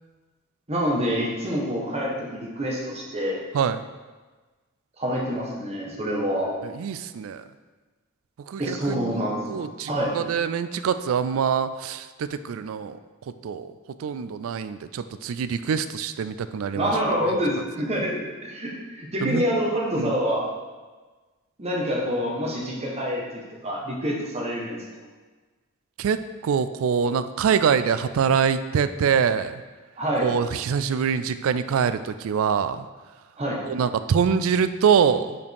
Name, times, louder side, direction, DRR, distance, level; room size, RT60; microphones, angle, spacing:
voice 1, 0.7-3.4 5.0-6.5 8.6-10.1 16.7-20.5 21.6-24.8 30.0-30.3 33.4-33.6, equal, 30° right, -3 dB, 1.3 m, -27 dB
voice 2, 3.5-3.8 6.6-7.4 8.4-13.0 13.4-16.9 17.2-17.4 19.2-19.4 20.0-20.2 26.0-29.6 30.2-32.9 33.7-35.4, right 7 dB, 70° right, 12 dB, 0.3 m, -24 dB
5.2 x 5.0 x 4.7 m, 1.3 s
head